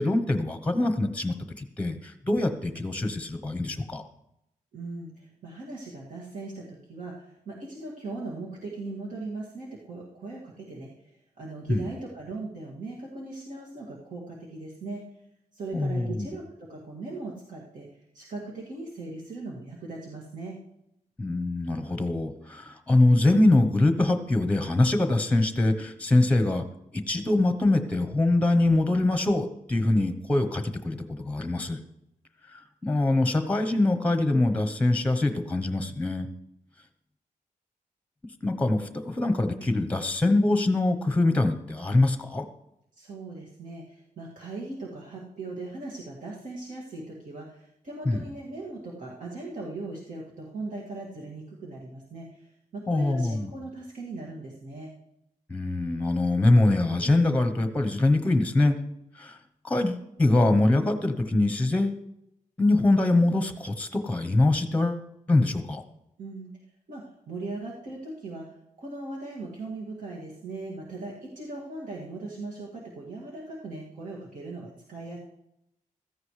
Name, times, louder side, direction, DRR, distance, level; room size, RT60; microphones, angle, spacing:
voice 1, 0.0-4.1 11.7-11.8 15.7-16.3 21.2-26.6 26.9-31.8 32.5-36.3 38.4-42.5 48.1-48.2 52.9-53.5 55.5-58.8 59.2-59.4 59.6-62.0 62.6-65.8, left 2 dB, 10° left, 8 dB, 0.9 m, -24 dB
voice 2, 4.7-10.9 11.4-15.0 15.5-17.9 18.1-20.6 43.0-54.9 66.2-66.5 66.9-75.2, right 2 dB, 70° right, -5 dB, 2.3 m, -39 dB
15.5 x 14.0 x 3.3 m, 0.83 s
wide cardioid pair, 155°, 14 cm